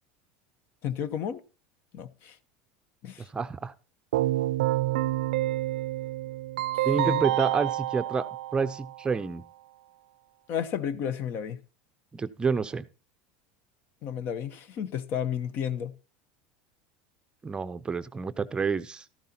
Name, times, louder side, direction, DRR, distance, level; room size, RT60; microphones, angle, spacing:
voice 1, 0.8-1.4 1.9-2.4 3.0-3.3 7.0-7.3 10.5-11.6 14.0-15.9, left 8 dB, 50° left, 0.9 m, -32 dB
voice 2, 3.2-3.7 6.8-8.3 8.5-9.4 12.1-12.8 17.4-19.0, right 5 dB, 20° right, 0.6 m, -29 dB
Keyboard (musical), 4.1-9.1, right 15 dB, 85° right, 0.5 m, -28 dB
13.5 x 12.0 x 2.9 m
supercardioid pair, 110°, 5 cm